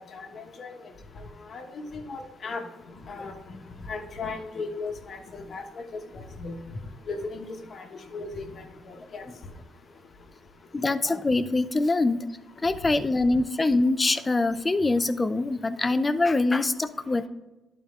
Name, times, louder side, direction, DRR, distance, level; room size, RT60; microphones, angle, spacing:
voice 1, 0.1-0.7 1.5-2.6 3.1-3.3 3.9-5.6 6.4-6.6 7.1-7.8 8.1-8.5 8.9-9.2, left 3 dB, 50° left, 4 dB, 1.2 m, -36 dB
voice 2, 10.7-12.3 12.6-17.3, left 2 dB, 25° left, 12 dB, 0.5 m, -24 dB
11.0 x 4.4 x 3.7 m, 1.1 s
cardioid pair, 90°, 0 cm